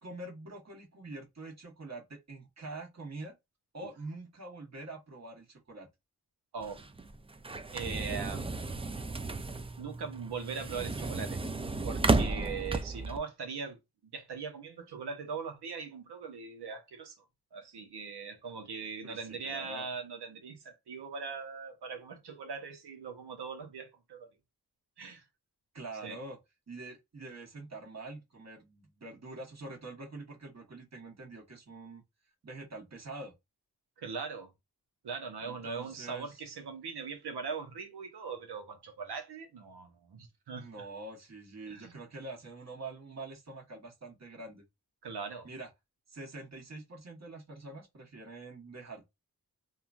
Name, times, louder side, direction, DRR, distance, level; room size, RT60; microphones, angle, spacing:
voice 1, 0.0-3.3 3.7-5.9 19.0-19.9 25.7-26.4 26.7-32.0 32.4-33.3 35.4-36.4 40.5-44.6 45.4-45.7 46.1-49.0, right 2 dB, 45° right, 1.3 m, -45 dB
voice 2, 6.5-6.8 7.7-8.5 9.8-11.4 11.8-17.2 17.5-24.3 25.0-25.2 26.0-26.2 34.0-34.5 35.0-40.7 41.7-42.0 45.0-45.5, right 5 dB, 85° right, 0.9 m, -40 dB
sound 1, 6.6-13.2, right 3 dB, 15° right, 0.4 m, -33 dB
2.9 x 2.4 x 2.4 m
cardioid pair, 45°, 39 cm